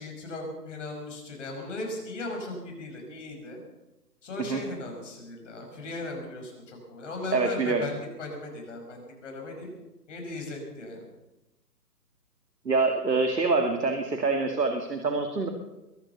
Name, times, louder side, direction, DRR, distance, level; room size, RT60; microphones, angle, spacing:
voice 1, 0.0-3.6 4.2-9.7 10.1-11.1, left 2 dB, 50° left, 2 dB, 5.6 m, -37 dB
voice 2, 7.3-7.8 12.7-15.5, right 3 dB, 85° right, 5 dB, 2.1 m, -25 dB
22.5 x 9.3 x 6.9 m, 1.0 s
figure-of-eight pair, 140°, 48 cm